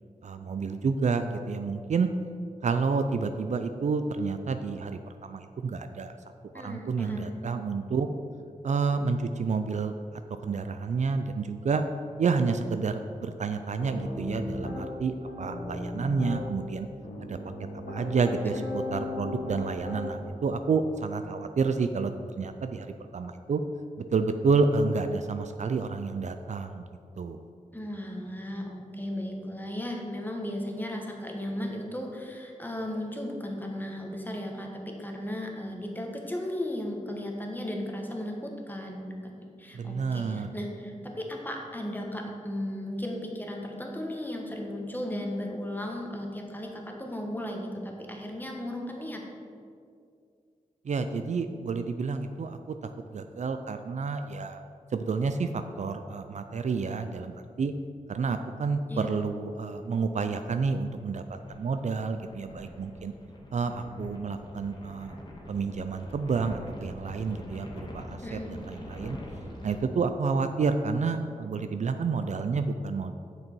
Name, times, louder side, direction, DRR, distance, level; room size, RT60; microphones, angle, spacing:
voice 1, 0.2-2.1 2.6-6.1 6.5-8.1 8.6-9.9 10.4-11.8 12.2-16.9 17.2-17.4 17.7-22.9 23.1-23.6 24.1-26.9 27.2-27.4 39.7-40.5 50.8-52.7 53.1-54.6 54.9-57.7 58.1-61.2 61.5-63.1 63.5-65.2 65.5-69.2 69.6-73.2, right 4 dB, 60° right, 8 dB, 0.4 m, -29 dB
voice 2, 6.5-7.3 18.6-18.7 27.7-49.2 58.9-59.2 68.2-68.5, left 1 dB, 15° left, 1 dB, 1.3 m, -36 dB
Piano, 13.8-14.8 15.3-16.4 17.0-20.3, left 2 dB, 85° left, 1.8 m, -36 dB
sound 1, 59.7-69.8, equal, 30° left, 1.4 m, -44 dB
7.6 x 6.1 x 4.5 m, 2.3 s
wide cardioid pair, 70°, 14 cm